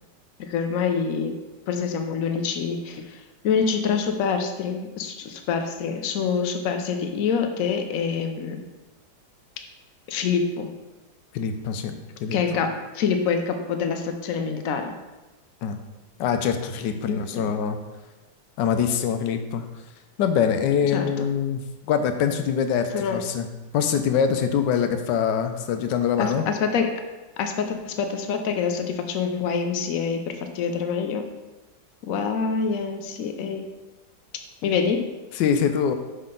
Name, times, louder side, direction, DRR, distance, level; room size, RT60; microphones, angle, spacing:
voice 1, 0.5-1.3 1.7-8.6 10.1-10.7 12.3-12.7 12.9-14.9 17.0-17.5 20.9-21.3 22.9-23.2 26.2-26.9 27.4-31.2 32.0-33.6 34.6-35.0, left 6 dB, 65° left, 5 dB, 0.9 m, -26 dB
voice 2, 11.3-11.9 12.2-12.6 15.6-15.8 16.2-17.8 18.6-19.6 20.2-23.5 23.7-26.4 35.3-36.0, left 7 dB, 85° left, 8 dB, 1.3 m, -24 dB
5.8 x 5.4 x 3.8 m, 1.1 s
omnidirectional pair, 1.9 m